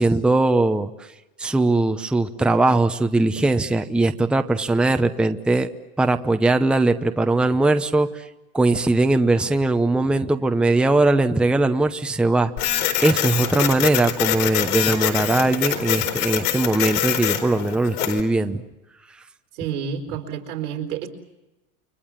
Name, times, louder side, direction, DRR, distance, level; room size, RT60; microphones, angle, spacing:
voice 1, 0.0-5.7 6.0-8.3 8.5-18.6 19.1-19.2, right 2 dB, ahead, 8 dB, 0.8 m, -20 dB
Printer, 12.6-18.2, left 11 dB, 70° left, 4.3 m, -24 dB
voice 2, 19.5-21.1, right 8 dB, 90° right, 5 dB, 4.4 m, -29 dB
30.0 x 23.0 x 7.5 m, 1.0 s
supercardioid pair, 130°, 44 cm